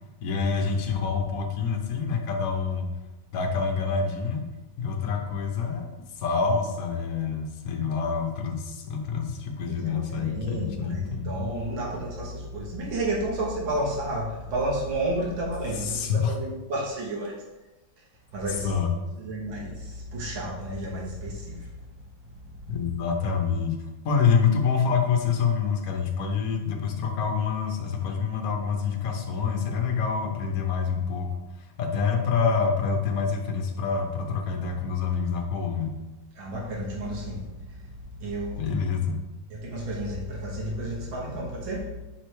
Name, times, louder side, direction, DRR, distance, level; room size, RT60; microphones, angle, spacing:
voice 1, 0.2-2.9 3.3-4.5 4.8-5.9 6.2-11.3 15.8-16.3 18.6-18.9 22.7-23.8 24.0-31.3 31.8-36.0 38.6-39.2, left 5 dB, 55° left, 2 dB, 1.1 m, -26 dB
voice 2, 9.7-17.4 18.3-18.7 19.2-21.7 36.4-37.8 38.2-38.7 38.9-39.0 39.5-41.9, right 1 dB, 70° right, -4 dB, 2.0 m, -31 dB
4.8 x 4.4 x 4.5 m, 1.0 s
omnidirectional pair, 2.2 m